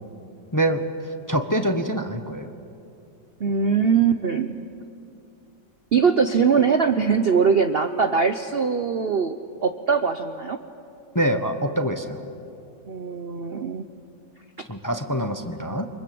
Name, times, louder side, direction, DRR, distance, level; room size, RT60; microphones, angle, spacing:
voice 1, 0.5-0.8 1.3-2.5 11.1-12.2 14.7-15.9, right 1 dB, 15° left, 7 dB, 0.9 m, -25 dB
voice 2, 3.4-4.6 5.9-10.6 12.9-13.9, right 6 dB, 50° right, 8 dB, 0.8 m, -21 dB
29.5 x 24.5 x 7.8 m, 2.6 s
omnidirectional pair, 1.9 m